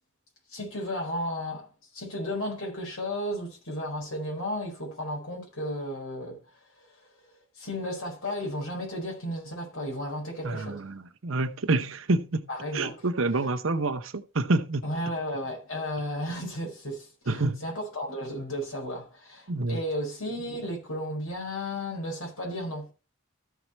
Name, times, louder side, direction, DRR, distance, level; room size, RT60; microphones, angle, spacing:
voice 1, 0.5-1.7 1.9-6.4 6.8-6.9 7.5-10.8 12.5-13.1 14.8-22.9, equal, 75° left, 4.7 m, -34 dB
voice 2, 10.4-12.5 12.7-14.8 17.3-17.6 19.5-19.8, right 2 dB, 60° right, 0.8 m, -27 dB
14.0 x 4.8 x 4.3 m
head